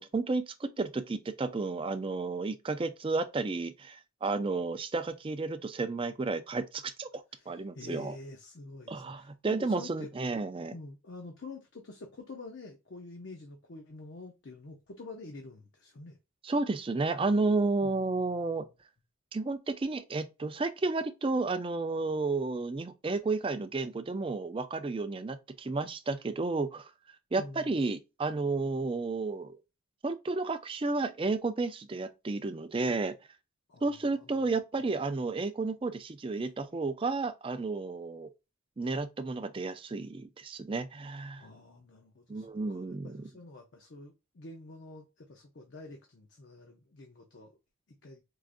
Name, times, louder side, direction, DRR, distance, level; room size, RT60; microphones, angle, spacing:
voice 1, 0.0-7.1 7.5-8.1 8.9-10.7 16.4-18.7 19.3-26.9 27.3-29.6 30.0-33.1 33.8-38.3 38.8-41.5 42.3-43.1, right 3 dB, 25° right, 0.3 m, -32 dB
voice 2, 7.3-10.1 10.4-16.2 17.8-18.7 27.4-27.8 33.7-34.6 36.4-36.5 41.4-47.6 47.9-48.2, left 2 dB, 55° left, 0.6 m, -48 dB
4.7 x 2.5 x 2.4 m
head